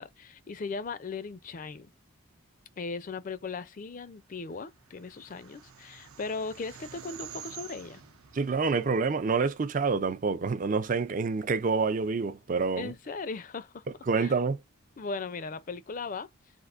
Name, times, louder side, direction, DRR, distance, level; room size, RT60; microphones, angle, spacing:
voice 1, 0.0-1.9 2.8-8.0 12.8-13.8 14.2-14.3 15.0-16.3, left 4 dB, 40° left, 0.4 m, -38 dB
sound 1, 4.5-9.9, right 8 dB, 85° right, 0.8 m, -49 dB
voice 2, 8.3-12.9 14.1-14.6, right 4 dB, 40° right, 0.4 m, -27 dB
3.5 x 2.5 x 2.4 m
head